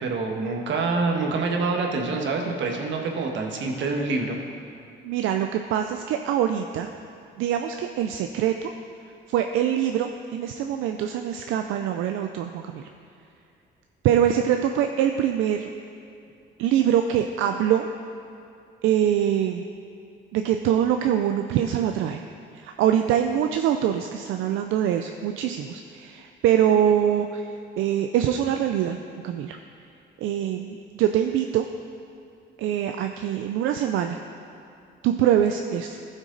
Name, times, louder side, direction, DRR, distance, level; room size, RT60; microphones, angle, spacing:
voice 1, 0.0-4.4, right 3 dB, 70° right, 2 dB, 1.4 m, -26 dB
voice 2, 5.0-6.9 7.4-8.7 9.3-12.9 14.0-15.7 16.6-17.9 18.8-19.7 20.3-22.2 22.5-27.5 27.8-29.0 29.2-29.6 30.2-31.7 32.6-34.2 35.0-36.0, right 10 dB, 90° right, 6 dB, 0.4 m, -24 dB
14.5 x 6.2 x 3.9 m, 2.6 s
cardioid pair, 90°, 20 cm